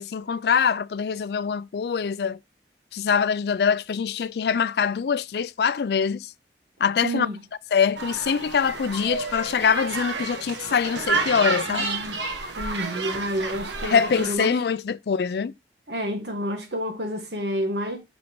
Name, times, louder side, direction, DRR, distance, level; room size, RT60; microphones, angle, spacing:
voice 1, 0.0-2.4 2.9-6.3 6.8-7.3 7.7-11.9 13.8-15.5, left 6 dB, 60° left, 0.4 m, -24 dB
voice 2, 7.0-7.4 11.7-12.2 12.5-14.6 15.9-18.0, equal, 70° right, 1.7 m, -29 dB
sound 1, 8.0-14.3, right 4 dB, 85° right, 1.3 m, -30 dB
8.5 x 5.1 x 3.0 m
head